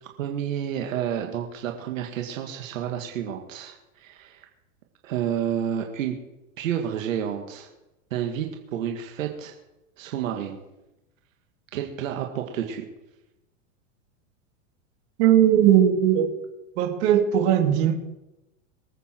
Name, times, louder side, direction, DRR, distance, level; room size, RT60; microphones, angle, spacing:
voice 1, 0.0-4.5 5.0-6.2 6.6-7.7 8.1-9.5 10.0-10.6 11.7-12.9, right 9 dB, 80° right, 3 dB, 2.0 m, -30 dB
voice 2, 15.2-16.3 16.8-17.9, right 10 dB, 55° right, 3 dB, 2.7 m, -18 dB
24.5 x 8.3 x 4.5 m, 0.96 s
supercardioid pair, 145°, 39 cm